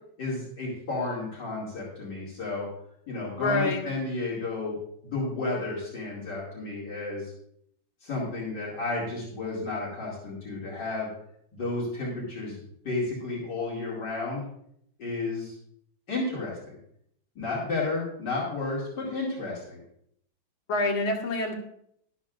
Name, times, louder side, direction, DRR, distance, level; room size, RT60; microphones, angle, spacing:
voice 1, 0.2-2.7 3.1-4.8 5.0-7.3 8.0-11.1 11.5-12.6 12.8-14.4 15.0-15.5 16.1-16.7 17.3-19.8, left 3 dB, 60° left, -6 dB, 3.1 m, -32 dB
voice 2, 3.4-3.8 20.7-21.5, left 2 dB, 85° left, 0 dB, 2.4 m, -26 dB
12.5 x 11.5 x 2.5 m, 0.71 s
omnidirectional pair, 2.2 m